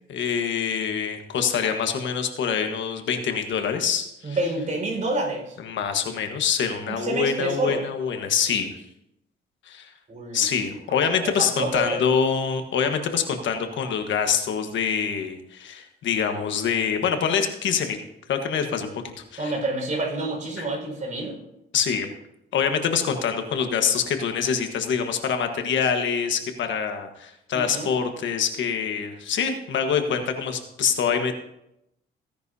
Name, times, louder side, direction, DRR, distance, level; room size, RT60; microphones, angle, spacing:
voice 1, 0.1-4.4 5.6-8.7 9.7-9.9 10.3-18.0 18.3-19.5 20.6-20.7 21.7-22.1 22.5-31.4, left 7 dB, 70° left, 6 dB, 1.4 m, -25 dB
voice 2, 4.2-5.5 6.9-7.8 10.1-10.5 11.2-12.0 19.4-21.4 27.5-27.9, right 2 dB, 40° right, 0 dB, 5.1 m, -28 dB
16.5 x 10.0 x 2.8 m, 0.82 s
cardioid pair, 90°, 20 cm